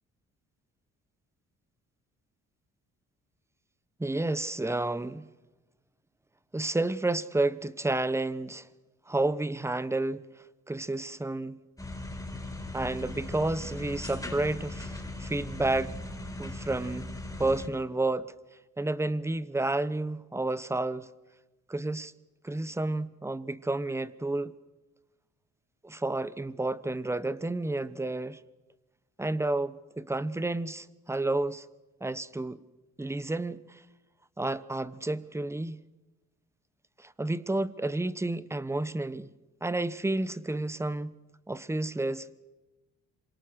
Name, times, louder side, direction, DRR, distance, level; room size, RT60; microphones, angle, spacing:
voice 1, 4.0-5.3 6.5-8.7 9.1-10.3 10.7-11.6 12.7-15.9 16.4-17.1 17.4-18.3 18.8-21.1 21.7-22.1 22.4-24.5 25.8-28.4 29.2-31.7 32.0-32.6 33.0-33.8 34.4-35.8 37.0-39.3 39.6-41.1 41.5-42.4, right 2 dB, 10° right, 1.0 m, -31 dB
sound 1, 11.8-17.7, left 2 dB, 10° left, 5.2 m, -39 dB
27.0 x 24.5 x 6.5 m
cardioid pair, 90°, 30 cm